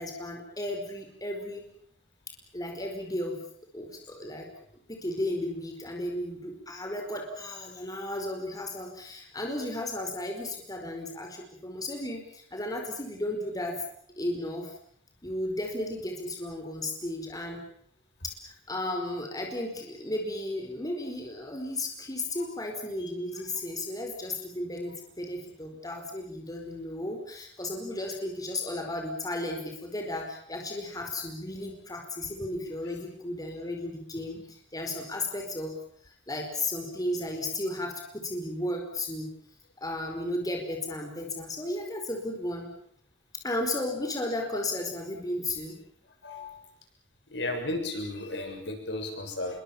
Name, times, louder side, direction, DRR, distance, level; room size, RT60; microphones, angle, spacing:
voice 1, 0.0-1.6 2.5-3.4 3.7-4.5 4.9-13.8 14.2-14.7 15.2-17.6 18.2-35.8 36.0-39.3 39.8-42.7 43.4-45.8, left 1 dB, 20° left, 3 dB, 5.0 m, -34 dB
voice 2, 47.3-49.6, left 2 dB, 70° left, 4 dB, 7.1 m, -34 dB
27.5 x 23.5 x 7.4 m, 0.66 s
head